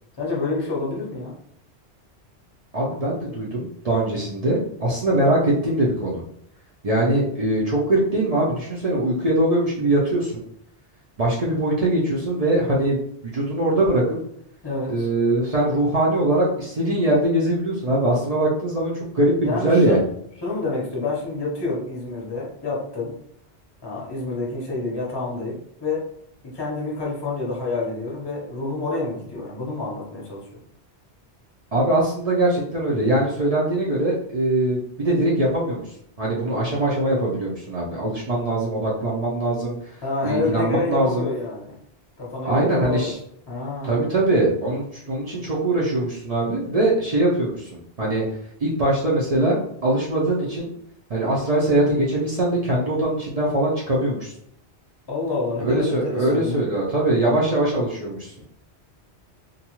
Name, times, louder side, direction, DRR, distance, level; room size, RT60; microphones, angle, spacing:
voice 1, 0.2-1.3 14.6-15.1 19.4-20.0 20.4-23.2 23.8-26.1 26.4-30.5 40.0-41.7 42.2-43.1 43.5-44.1 55.1-56.6, left 3 dB, 25° left, -4 dB, 0.7 m, -28 dB
voice 2, 2.7-6.2 6.8-10.4 11.2-14.2 14.9-20.0 31.7-35.8 36.2-39.8 40.2-41.3 42.4-43.1 43.8-48.2 48.6-50.7 51.1-54.3 55.6-58.3, right 1 dB, 45° right, -6 dB, 0.5 m, -22 dB
2.6 x 2.3 x 2.9 m, 0.71 s
omnidirectional pair, 1.1 m